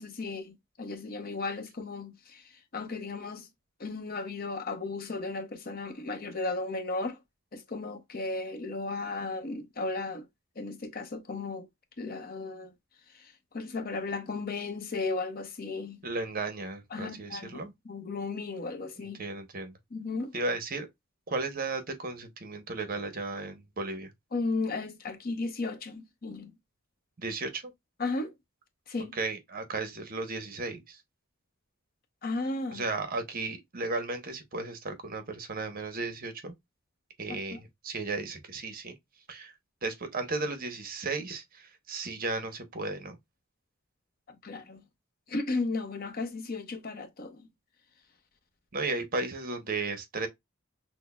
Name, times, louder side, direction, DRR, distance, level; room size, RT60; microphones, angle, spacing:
voice 1, 0.0-3.5 3.8-7.2 7.5-10.3 10.6-11.7 12.0-12.7 13.1-16.0 16.9-17.6 17.9-19.2 19.9-20.3 24.3-26.5 28.0-28.3 28.9-29.2 32.2-32.8 37.5-37.6 44.3-44.8 45.3-47.5, left 3 dB, 45° left, 0.7 m, -35 dB
voice 2, 16.0-17.7 19.0-19.8 20.3-20.9 21.3-24.1 27.2-27.7 29.1-31.0 32.7-36.5 37.2-38.9 39.3-39.5 39.8-43.2 48.7-50.3, right 3 dB, 45° right, 0.8 m, -35 dB
6.1 x 2.1 x 2.2 m
head